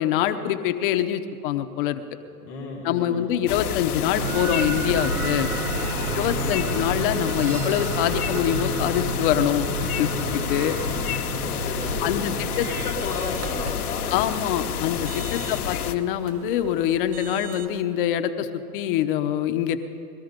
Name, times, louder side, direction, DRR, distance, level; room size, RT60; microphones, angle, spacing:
voice 1, 0.0-2.0 2.8-5.5 6.2-10.1 10.5-10.8 12.0-12.7 14.1-18.5 18.7-19.8, left 11 dB, 35° left, 9 dB, 0.8 m, -24 dB
voice 2, 2.4-3.5 5.9-6.9 10.1-14.1 15.3-15.6, left 3 dB, 5° left, -5 dB, 0.3 m, -35 dB
sound 1, 3.5-16.0, left 9 dB, 70° left, 1.1 m, -30 dB
sound 2, 4.1-13.0, right 4 dB, 75° right, 1.3 m, -30 dB
sound 3, 11.8-17.8, right 4 dB, 25° right, 0.7 m, -40 dB
20.0 x 13.0 x 5.1 m, 2.6 s
hypercardioid pair, 135°, 45 cm